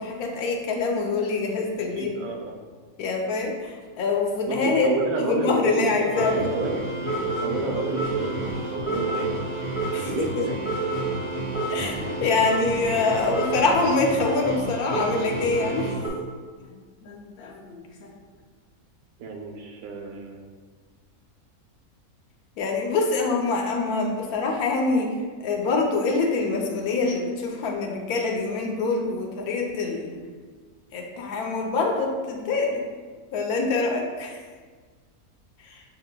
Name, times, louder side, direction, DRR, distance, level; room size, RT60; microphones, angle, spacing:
voice 1, 0.0-2.1 3.0-4.9 5.1-6.5 9.9-10.5 11.7-15.9 16.6-18.1 22.6-30.2 30.9-32.8 33.3-34.4 35.6-35.8, left 3 dB, 80° left, 1 dB, 1.2 m, -25 dB
voice 2, 2.0-2.6 4.5-9.3 10.1-10.6 19.2-20.5, right 3 dB, 90° right, 2 dB, 1.2 m, -31 dB
sound 1, 6.1-16.1, right 2 dB, 45° right, 1.9 m, -29 dB
7.5 x 2.9 x 2.2 m, 1.5 s
omnidirectional pair, 1.6 m